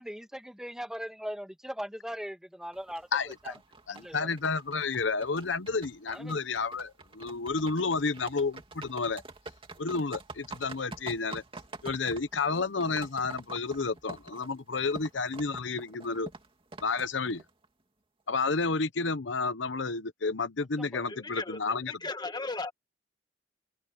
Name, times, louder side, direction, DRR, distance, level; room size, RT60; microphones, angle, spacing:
voice 1, 0.0-3.6 3.9-4.3 6.1-6.4 20.8-21.1, equal, 5° right, 2.1 m, -40 dB
sound 1, 2.7-17.7, right 3 dB, 30° right, 2.6 m, -47 dB
voice 2, 3.1-3.5 3.9-9.2 9.8-11.4 11.8-16.3 16.8-17.4 18.3-21.9, left 4 dB, 75° left, 0.9 m, -31 dB
voice 3, 21.1-22.7, left 3 dB, 25° left, 1.6 m, -37 dB
head